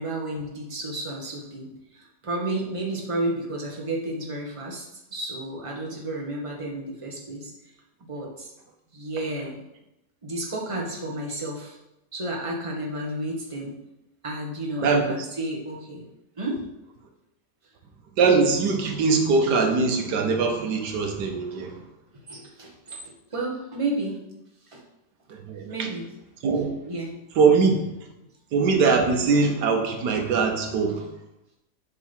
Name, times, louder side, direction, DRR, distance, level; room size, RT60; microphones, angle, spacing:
voice 1, 0.0-7.5 8.1-8.5 8.9-9.6 10.2-11.8 12.1-13.7 14.2-16.1 16.4-16.6 22.1-24.2 24.7-24.8 25.6-26.0 26.8-27.1, right 1 dB, 20° right, -1 dB, 1.4 m, -32 dB
voice 2, 18.2-21.7 25.3-25.9 26.4-26.7 27.4-27.8 28.5-31.1, right 4 dB, 90° right, 4 dB, 1.6 m, -22 dB
7.3 x 4.6 x 5.5 m, 0.89 s
omnidirectional pair, 1.7 m